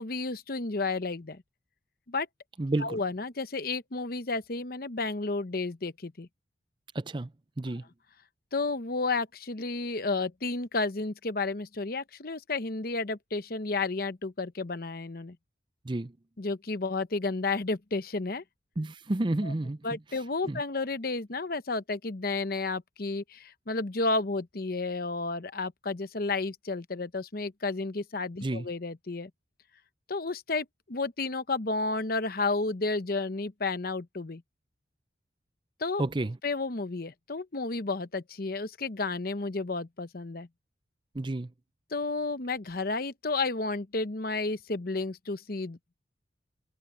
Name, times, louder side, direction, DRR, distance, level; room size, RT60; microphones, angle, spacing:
voice 1, 0.0-1.4 2.1-2.3 2.8-6.3 8.5-15.4 16.4-18.4 19.4-19.5 19.8-29.3 30.1-34.4 35.8-36.0 36.4-40.5 41.9-45.9, left 3 dB, 50° left, 0.9 m, -32 dB
voice 2, 2.6-3.0 6.9-7.3 7.6-7.8 15.8-16.1 18.8-19.8 20.5-20.6 28.4-28.7 36.0-36.4 41.1-41.5, right 2 dB, 25° right, 0.5 m, -30 dB
head